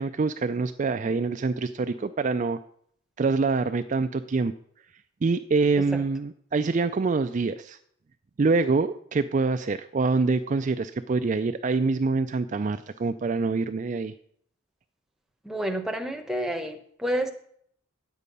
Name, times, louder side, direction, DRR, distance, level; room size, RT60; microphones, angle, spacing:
voice 1, 0.0-2.6 3.2-4.5 5.2-7.8 8.4-14.1, right 4 dB, 35° right, 9 dB, 0.3 m, -25 dB
voice 2, 15.4-17.3, right 1 dB, ahead, 4 dB, 0.9 m, -29 dB
10.0 x 8.3 x 5.3 m, 0.64 s
head